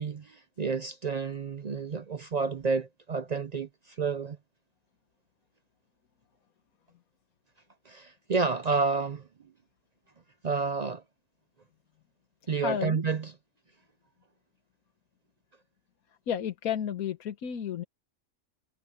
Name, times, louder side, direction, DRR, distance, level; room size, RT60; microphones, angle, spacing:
voice 1, 0.0-4.4 7.9-9.3 10.4-11.0 12.5-13.3, right 4 dB, 60° right, 0.4 m, -30 dB
voice 2, 12.4-13.0 16.3-17.8, left 9 dB, 85° left, 1.5 m, -32 dB
omnidirectional pair, 1.5 m